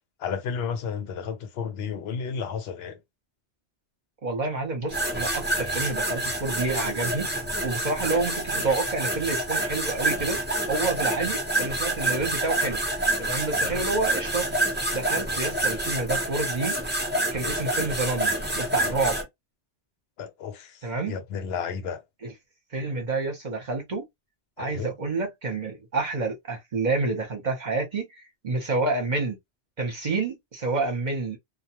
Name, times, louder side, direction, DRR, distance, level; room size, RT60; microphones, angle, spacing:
voice 1, 0.2-3.0 20.2-22.0 24.6-24.9, left 6 dB, 75° left, 0.8 m, -32 dB
voice 2, 4.2-7.3 7.6-10.4 10.7-12.8 13.2-14.4 14.9-16.8 17.3-19.2 20.8-21.2 22.2-22.3 22.7-24.0 24.6-28.1 28.4-29.4 29.8-31.4, right 3 dB, 45° right, 1.0 m, -28 dB
sound 1, 4.9-19.2, right 1 dB, 10° right, 0.7 m, -27 dB
2.2 x 2.2 x 2.8 m
omnidirectional pair, 1.1 m